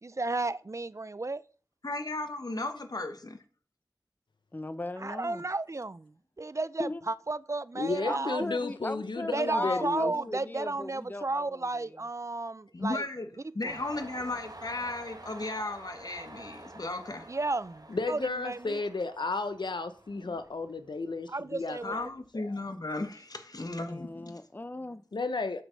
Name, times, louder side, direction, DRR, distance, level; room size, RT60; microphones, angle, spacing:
voice 1, 0.0-1.4 5.0-6.1 6.4-8.4 9.3-13.0 13.6-13.7 17.3-18.8 20.2-20.4 21.3-22.1, right 3 dB, 40° right, 0.4 m, -33 dB
voice 2, 1.8-3.4 12.7-13.3 13.5-17.3 21.8-24.4, left 2 dB, 55° left, 1.1 m, -35 dB
voice 3, 4.5-5.4 6.8-7.0 8.1-11.7 23.9-25.0, left 2 dB, 25° left, 0.6 m, -37 dB
voice 4, 7.7-10.1 17.9-22.4 25.1-25.6, left 3 dB, 90° left, 0.8 m, -33 dB
Train, 13.6-21.1 21.4-22.3, right 2 dB, 60° right, 1.5 m, -49 dB
7.6 x 5.1 x 6.3 m
wide cardioid pair, 60°, 8 cm